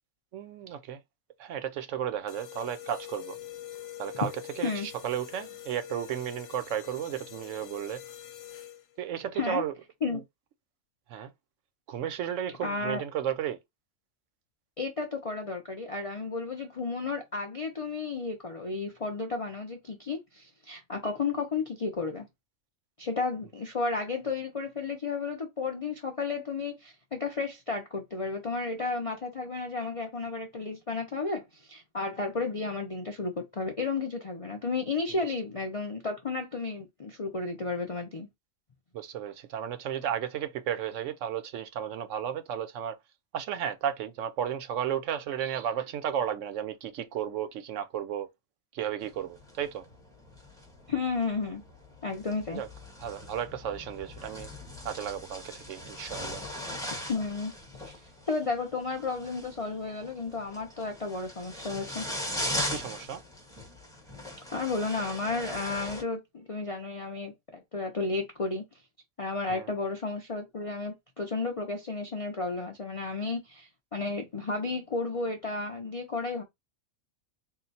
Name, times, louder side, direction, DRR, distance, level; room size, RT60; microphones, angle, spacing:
voice 1, 0.3-1.0 1.4-3.4 4.0-4.3 4.6-8.0 9.0-9.7 10.1-10.2 11.1-11.3 11.9-13.6 35.1-35.2 38.9-43.0 43.3-48.3 48.7-49.8 52.5-52.7 53.0-54.5 54.8-56.4 62.7-63.2 69.5-69.7, right 9 dB, 70° right, 0.9 m, -33 dB
sound 1, 2.3-9.1, left 12 dB, 70° left, 0.9 m, -45 dB
voice 2, 12.6-13.0 14.8-22.3 23.0-38.3 50.9-51.6 52.0-52.6 57.1-57.5 57.8-58.0 58.3-62.0 64.5-68.6 69.2-76.4, left 4 dB, 40° left, 0.5 m, -33 dB
sound 2, 49.0-66.0, left 1 dB, 5° left, 0.9 m, -40 dB
3.8 x 2.2 x 4.0 m
omnidirectional pair, 1.4 m